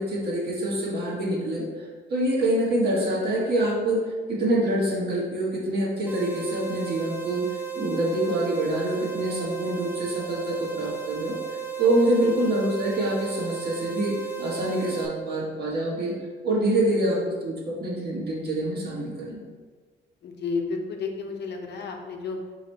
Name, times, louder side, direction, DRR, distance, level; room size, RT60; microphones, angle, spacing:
voice 1, 0.0-16.1 16.4-19.4, right 1 dB, 55° right, -4 dB, 1.5 m, -26 dB
sound 1, 6.1-15.1, right 7 dB, 10° right, 0.7 m, -34 dB
voice 2, 20.2-22.4, left 4 dB, 60° left, 2 dB, 0.7 m, -32 dB
4.0 x 3.2 x 4.2 m, 1.4 s
cardioid pair, 90°, 20 cm